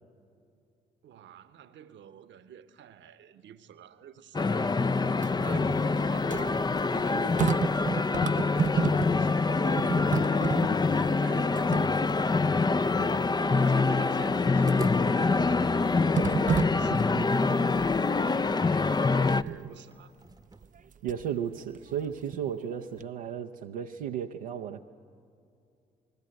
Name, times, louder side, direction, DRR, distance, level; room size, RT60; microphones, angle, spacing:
voice 1, 1.0-4.8 5.4-10.9 11.2-17.7 18.2-20.1, right 9 dB, 65° right, 1.1 m, -47 dB
sound 1, 4.3-19.4, left 4 dB, 20° left, 0.5 m, -25 dB
sound 2, 5.1-9.4 9.6-12.4 13.0-13.1 14.7-15.2 16.1-17.7 19.3-19.7 20.6-21.3 21.7-22.7 23.0-23.1, right 8 dB, 40° right, 0.5 m, -33 dB
sound 3, 14.7-16.8 17.1-17.2 17.7-20.9, right 3 dB, 20° right, 0.9 m, -43 dB
voice 2, 21.0-24.8, right 8 dB, 85° right, 0.6 m, -34 dB
28.5 x 20.0 x 7.7 m
hypercardioid pair, 45°, 21 cm